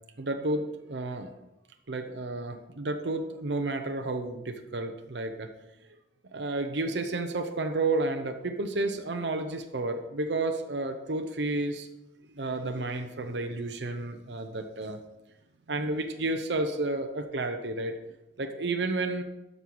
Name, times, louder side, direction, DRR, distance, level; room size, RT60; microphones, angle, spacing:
voice 1, 0.2-1.3 1.9-5.5 6.3-11.9 12.3-15.0 15.7-17.9 18.4-19.2, right 2 dB, 70° right, 5 dB, 0.8 m, -31 dB
13.0 x 5.5 x 4.7 m, 0.95 s
head